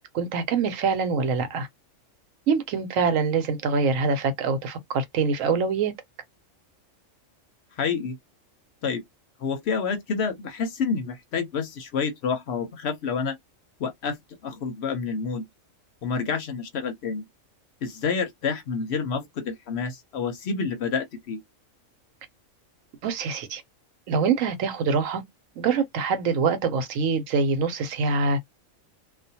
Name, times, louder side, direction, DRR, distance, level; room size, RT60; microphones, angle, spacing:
voice 1, 0.1-1.7 2.5-5.9 23.0-23.6 24.1-25.2 25.6-28.4, right 5 dB, 75° right, 1.0 m, -24 dB
voice 2, 7.8-8.2 8.8-9.0 9.4-13.4 13.8-14.2 14.4-15.4 16.0-17.2 17.8-21.4, left 5 dB, 60° left, 0.8 m, -28 dB
2.4 x 2.2 x 2.7 m
omnidirectional pair, 1.4 m